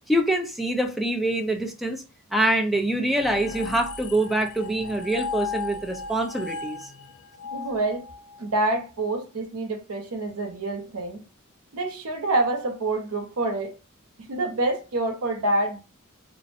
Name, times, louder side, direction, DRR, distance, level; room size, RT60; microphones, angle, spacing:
voice 1, 0.1-2.0 2.3-6.9, right 1 dB, ahead, 0.3 m, -25 dB
sound 1, 3.2-8.6, left 5 dB, 75° left, 0.4 m, -36 dB
voice 2, 7.5-8.0 8.4-11.2 11.7-13.7 14.3-15.8, right 2 dB, 85° right, 0.6 m, -27 dB
2.5 x 2.0 x 2.5 m
head